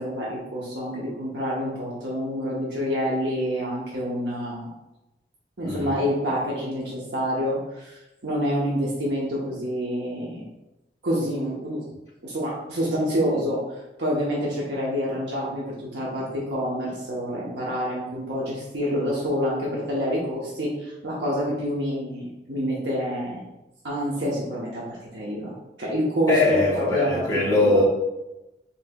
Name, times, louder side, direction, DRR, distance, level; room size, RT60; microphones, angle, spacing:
voice 1, 0.0-4.7 5.6-10.4 11.0-11.8 12.2-13.6 14.0-23.4 23.8-25.5 25.8-27.8, equal, 80° right, -5 dB, 1.0 m, -27 dB
voice 2, 5.6-6.0 26.3-27.8, left 2 dB, 20° left, -5 dB, 1.2 m, -21 dB
6.5 x 3.1 x 2.3 m, 0.96 s
head